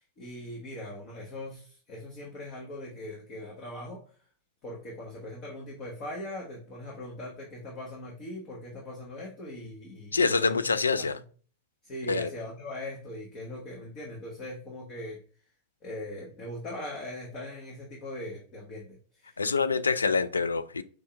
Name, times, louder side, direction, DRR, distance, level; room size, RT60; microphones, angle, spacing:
voice 1, 0.0-4.0 4.6-11.1 11.8-15.2 15.8-19.4, left 1 dB, 40° left, 1.3 m, -40 dB
voice 2, 10.1-11.2 12.1-12.3 19.4-20.8, left 4 dB, 75° left, 0.3 m, -26 dB
5.2 x 2.8 x 3.2 m
figure-of-eight pair, 90°, 0 cm